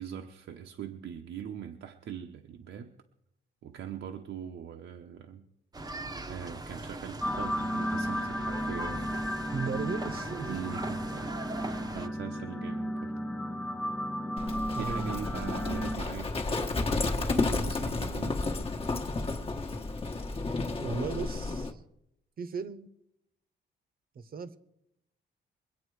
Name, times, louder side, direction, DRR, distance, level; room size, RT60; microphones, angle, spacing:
voice 1, 0.0-2.9 3.6-5.5 6.3-9.1 10.5-11.5 11.9-13.1 14.7-18.4, right 9 dB, 80° right, 4 dB, 0.9 m, -42 dB
sound 1, 5.7-12.1, right 2 dB, 20° right, 0.8 m, -40 dB
sound 2, 7.2-16.0, equal, 10° left, 0.5 m, -34 dB
voice 2, 9.5-10.5 14.7-15.1 20.8-21.8 22.4-22.9 24.1-24.6, right 5 dB, 50° right, 13 dB, 0.9 m, -36 dB
Livestock farm animals working animals, 14.4-21.7, left 3 dB, 30° left, 1.2 m, -32 dB
23.0 x 8.7 x 4.8 m, 0.81 s
cardioid pair, 140°, 20 cm